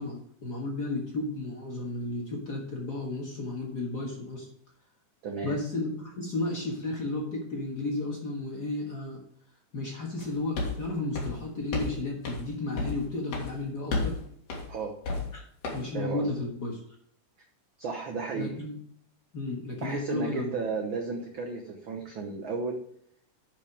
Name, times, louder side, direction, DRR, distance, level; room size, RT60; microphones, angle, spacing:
voice 1, 0.0-4.5 5.4-9.2 9.7-14.2 15.3-15.4 15.7-16.8 18.3-18.7 19.3-20.5, left 2 dB, 45° left, -1 dB, 1.5 m, -33 dB
voice 2, 5.2-5.6 14.7-14.9 15.9-16.3 17.8-18.6 19.8-22.8, right 4 dB, 80° right, 3 dB, 1.1 m, -33 dB
sound 1, 10.2-10.3 10.5-10.8 11.2-11.9 12.3-12.4 12.8-13.0 13.3-13.5 13.9-14.2 14.5-14.7 15.0-15.4 15.6-15.8, left 3 dB, 75° left, 3.5 m, -31 dB
10.5 x 5.1 x 5.0 m, 0.67 s
omnidirectional pair, 3.7 m